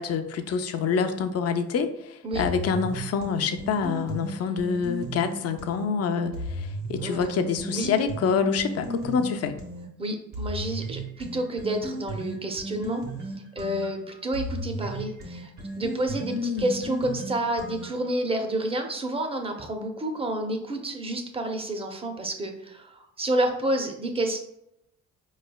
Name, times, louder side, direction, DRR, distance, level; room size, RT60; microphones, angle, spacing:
voice 1, 0.0-9.6 16.3-16.7, left 6 dB, 55° left, 7 dB, 0.5 m, -27 dB
sound 1, 2.3-5.9 6.3-9.9 10.3-18.1, right 1 dB, 60° right, 1.5 m, -35 dB
voice 2, 6.9-7.4 7.7-7.9 10.0-13.0 13.5-24.4, right 1 dB, 20° right, 4 dB, 0.7 m, -29 dB
4.8 x 3.1 x 2.3 m, 0.81 s
cardioid pair, 90°, 30 cm